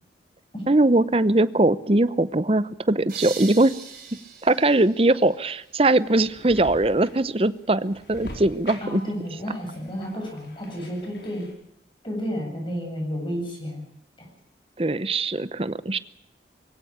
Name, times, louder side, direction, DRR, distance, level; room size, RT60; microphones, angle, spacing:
voice 1, 0.7-3.7 4.4-9.0 14.8-16.0, right 2 dB, 30° right, 16 dB, 0.8 m, -21 dB
sound 1, 3.1-5.9, right 6 dB, 50° right, 6.9 m, -40 dB
sound 2, 5.6-11.5, left 1 dB, 75° left, 4.6 m, -43 dB
voice 2, 8.8-11.5 12.0-13.8 14.2-14.3, equal, 30° left, 0 dB, 7.9 m, -31 dB
22.5 x 16.5 x 8.8 m, 0.81 s
head